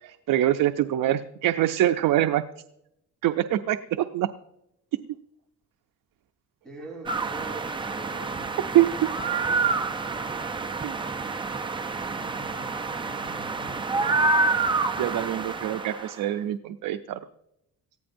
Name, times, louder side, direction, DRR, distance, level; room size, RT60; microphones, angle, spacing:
voice 1, 0.0-2.4 3.2-4.3 8.7-8.9 10.8-11.0 15.0-17.2, right 13 dB, 80° right, 8 dB, 0.6 m, -24 dB
voice 2, 6.6-8.4 12.2-14.7, right 1 dB, ahead, 0 dB, 3.9 m, -45 dB
sound 1, 7.1-16.2, right 3 dB, 15° right, 0.5 m, -28 dB
18.5 x 14.5 x 2.6 m, 0.83 s
wide cardioid pair, 175°, 33 cm